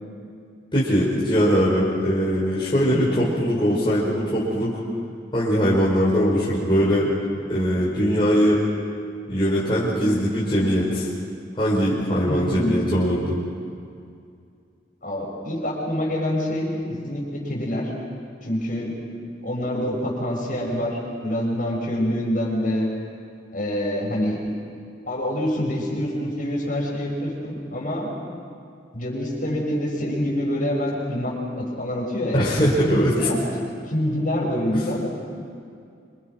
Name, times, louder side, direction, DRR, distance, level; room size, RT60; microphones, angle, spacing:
voice 1, 0.7-4.8 5.3-7.1 7.5-8.6 9.3-11.1 11.5-13.3 32.3-33.3 34.7-34.8, equal, 25° left, -7 dB, 5.1 m, -21 dB
voice 2, 12.3-12.7 15.0-16.8 17.0-17.9 18.4-18.9 19.4-22.9 23.5-24.4 25.1-28.1 28.9-32.5 33.1-33.4 33.9-35.1, left 1 dB, 45° left, -2 dB, 6.9 m, -26 dB
28.0 x 26.5 x 6.2 m, 2.3 s
head